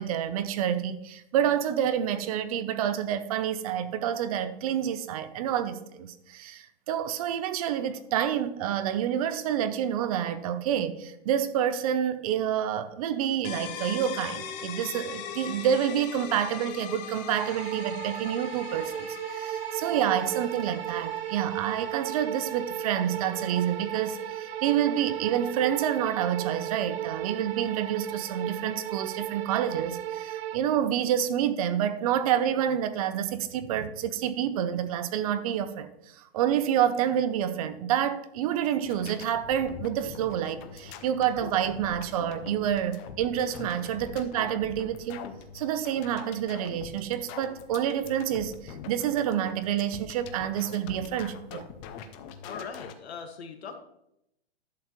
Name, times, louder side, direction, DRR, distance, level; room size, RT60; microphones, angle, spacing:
voice 1, 0.0-51.7, right 9 dB, 35° right, 0.6 m, -28 dB
sound 1, 13.4-29.0, left 8 dB, 40° left, 1.2 m, -43 dB
sound 2, 17.4-30.6, right 12 dB, 70° right, 0.5 m, -35 dB
sound 3, 38.8-52.9, left 7 dB, 15° left, 0.4 m, -44 dB
voice 2, 52.4-53.8, left 5 dB, 85° left, 1.8 m, -40 dB
11.0 x 7.8 x 3.1 m
hypercardioid pair, 155°, 31 cm